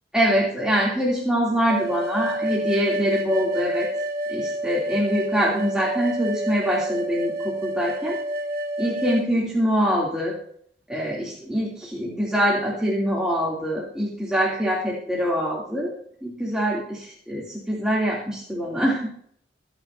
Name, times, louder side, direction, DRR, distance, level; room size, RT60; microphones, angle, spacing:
voice 1, 0.1-3.9 4.3-8.2 8.8-10.3 10.9-15.9 16.2-19.1, equal, 5° right, -5 dB, 3.0 m, -24 dB
sound 1, 1.7-9.3, right 1 dB, 50° right, 1.4 m, -28 dB
26.0 x 10.0 x 2.8 m, 0.63 s
head